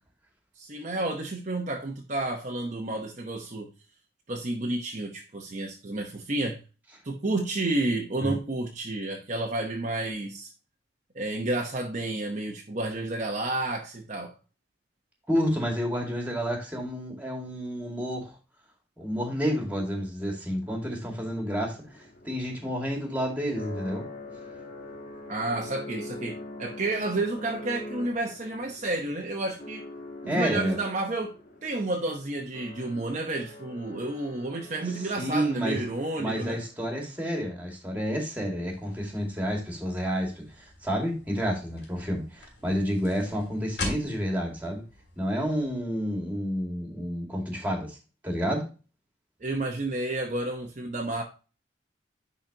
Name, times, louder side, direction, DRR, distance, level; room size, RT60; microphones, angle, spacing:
voice 1, 0.6-3.7 4.3-6.6 7.0-10.5 11.1-14.3 25.3-29.8 30.2-31.3 31.6-36.6 49.4-51.2, right 2 dB, 40° right, 0.9 m, -31 dB
voice 2, 15.3-18.3 19.0-21.8 22.2-24.1 30.3-30.8 35.2-35.8 36.2-44.8 45.2-48.0 48.2-48.7, equal, 10° right, 2.1 m, -30 dB
sound 1, 21.0-37.0, left 1 dB, 45° left, 1.4 m, -44 dB
sound 2, 38.7-45.7, left 2 dB, 65° left, 3.0 m, -43 dB
10.5 x 4.1 x 2.8 m
head